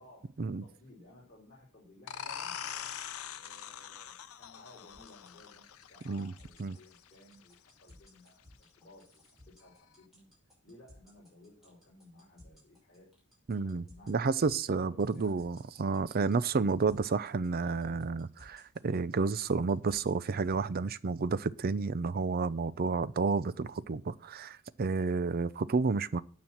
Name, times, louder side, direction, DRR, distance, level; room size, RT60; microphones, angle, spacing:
voice 1, 0.0-2.9 3.4-10.3 10.6-13.1 13.5-14.1 14.7-15.5, left 1 dB, 35° left, 3.9 m, -57 dB
sound 1, 2.1-7.5, left 9 dB, 85° left, 0.7 m, -43 dB
sound 2, 4.9-20.6, left 1 dB, ahead, 6.0 m, -58 dB
voice 2, 13.5-26.2, right 4 dB, 45° right, 0.5 m, -31 dB
9.7 x 6.0 x 7.3 m
head